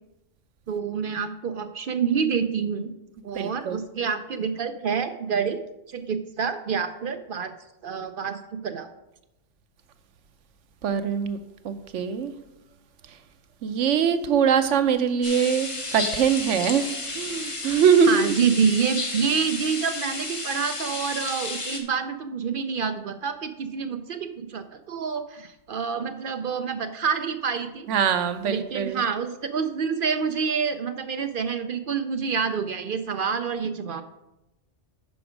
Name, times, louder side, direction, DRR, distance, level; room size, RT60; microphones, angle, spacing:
voice 1, 0.7-2.9 3.2-5.6 5.9-7.5 7.8-8.9 18.1-27.9 28.5-34.0, right 6 dB, 60° right, 9 dB, 0.6 m, -27 dB
voice 2, 3.3-3.8 10.8-11.4 11.6-12.3 13.6-16.9 17.1-18.3 27.9-29.0, right 7 dB, 90° right, 10 dB, 1.0 m, -22 dB
sound 1, 15.2-21.8, left 2 dB, 30° left, 1.1 m, -32 dB
8.7 x 6.0 x 4.9 m, 0.94 s
omnidirectional pair, 1.2 m